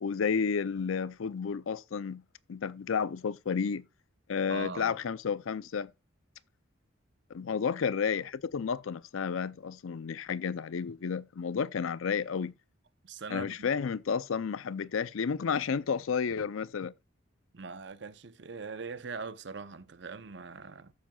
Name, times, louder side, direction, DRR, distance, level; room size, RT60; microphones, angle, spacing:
voice 1, 0.0-2.2 2.5-3.8 4.3-5.9 7.3-12.5 13.3-16.9, left 6 dB, 80° left, 0.5 m, -31 dB
voice 2, 4.5-5.0 13.0-13.7 17.5-20.9, right 4 dB, 60° right, 0.7 m, -41 dB
14.0 x 7.6 x 2.3 m
head